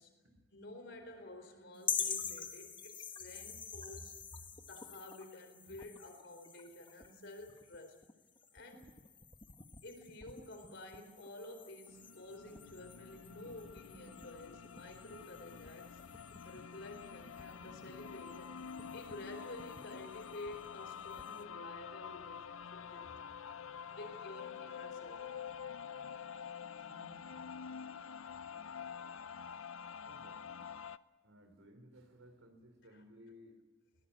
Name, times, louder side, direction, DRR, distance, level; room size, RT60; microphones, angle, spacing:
voice 1, 0.5-8.0 8.5-8.9 9.8-16.0 16.4-23.2 23.9-25.3 28.5-29.1 32.9-33.0, left 2 dB, 60° left, 5 dB, 4.4 m, -51 dB
sound 1, 1.8-21.4, left 6 dB, 25° left, 1.3 m, -47 dB
sound 2, 11.9-31.0, left 7 dB, 80° left, 0.6 m, -48 dB
voice 2, 26.8-27.3 28.0-28.5 30.0-30.7 31.2-33.6, equal, 80° right, 8 dB, 3.7 m, -60 dB
22.0 x 18.5 x 8.5 m, 1.2 s
head